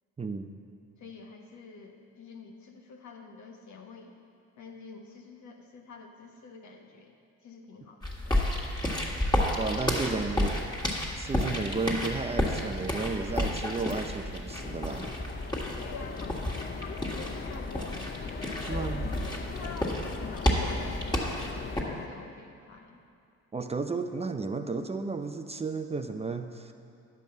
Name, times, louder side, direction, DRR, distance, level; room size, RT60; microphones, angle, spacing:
voice 1, 0.2-0.6 9.6-10.6 11.1-15.2 18.7-19.0 23.5-26.7, right 3 dB, 20° right, 7 dB, 0.5 m, -33 dB
voice 2, 1.0-4.2 4.6-7.1 7.4-8.4 15.8-18.0 18.7-19.0 19.4-23.0, left 4 dB, 70° left, 2 dB, 1.3 m, -47 dB
sound 1, 8.0-21.8, left 1 dB, 15° left, 1.6 m, -31 dB
sound 2, 14.5-22.1, left 7 dB, 35° left, 0.5 m, -41 dB
10.5 x 5.3 x 7.7 m, 2.4 s
cardioid pair, 90°, 30 cm